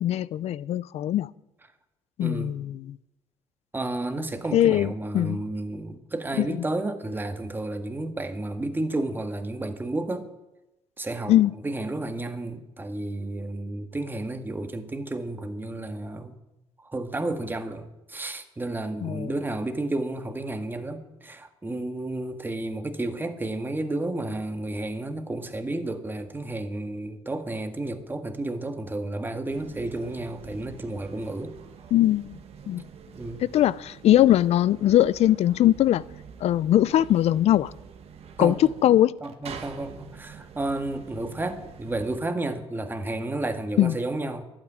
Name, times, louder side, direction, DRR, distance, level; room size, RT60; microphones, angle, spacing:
voice 1, 0.0-1.3 2.2-3.0 4.5-5.4 6.4-6.6 11.3-11.5 19.0-19.3 31.9-32.4 32.7-32.8 33.4-36.0 36.4-37.7 38.4-39.1 43.8-44.0, left 12 dB, 65° left, 0.5 m, -21 dB
voice 2, 2.2-2.6 3.7-10.3 11.0-11.3 11.6-16.3 16.8-31.5 33.1-33.4 38.4-38.6 39.2-44.4, right 2 dB, 15° right, 1.7 m, -31 dB
sound 1, 29.5-42.2, right 7 dB, 60° right, 1.7 m, -46 dB
11.5 x 9.0 x 9.7 m
cardioid pair, 85°, 12 cm